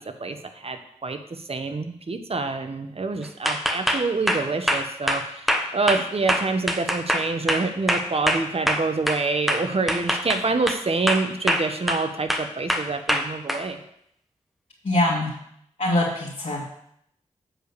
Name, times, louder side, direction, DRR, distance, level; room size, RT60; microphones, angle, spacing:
voice 1, 0.6-1.2 1.5-13.8, right 3 dB, 45° right, 7 dB, 1.1 m, -26 dB
sound 1, 3.5-9.2 9.5-10.8 11.1-12.0 12.3-13.6, equal, ahead, 1.1 m, -24 dB
voice 2, 14.8-15.3 15.8-16.7, left 1 dB, 55° left, -7 dB, 2.4 m, -23 dB
7.7 x 4.9 x 6.8 m, 0.73 s
cardioid pair, 50°, 14 cm